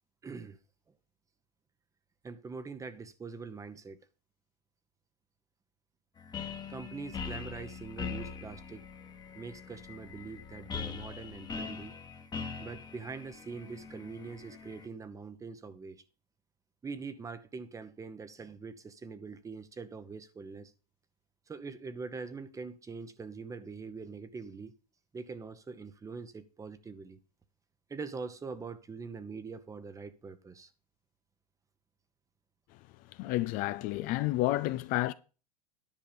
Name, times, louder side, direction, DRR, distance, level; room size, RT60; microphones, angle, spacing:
voice 1, 0.2-0.6 2.2-4.0 6.7-8.8 9.3-11.9 12.6-16.0 16.8-20.7 21.5-24.7 25.1-27.2 27.9-30.7, right 4 dB, 15° right, 1.0 m, -43 dB
sound 1, 6.2-14.9, left 5 dB, 20° left, 1.3 m, -42 dB
voice 2, 33.1-35.1, left 16 dB, 45° left, 0.5 m, -30 dB
10.5 x 5.3 x 6.8 m
hypercardioid pair, 100°, 20 cm